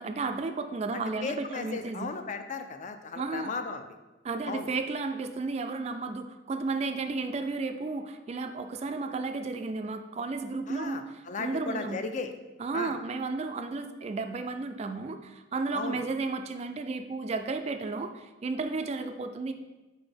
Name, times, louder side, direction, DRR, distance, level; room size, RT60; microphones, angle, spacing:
voice 1, 0.0-2.1 3.2-3.5 4.2-11.1 11.4-12.0 12.6-19.5, right 3 dB, 35° right, 7 dB, 0.3 m, -33 dB
voice 2, 0.9-3.9 4.4-4.7 10.7-12.3 12.7-12.9 15.7-16.0, left 4 dB, 40° left, 7 dB, 0.4 m, -36 dB
4.8 x 4.1 x 5.1 m, 1.1 s
head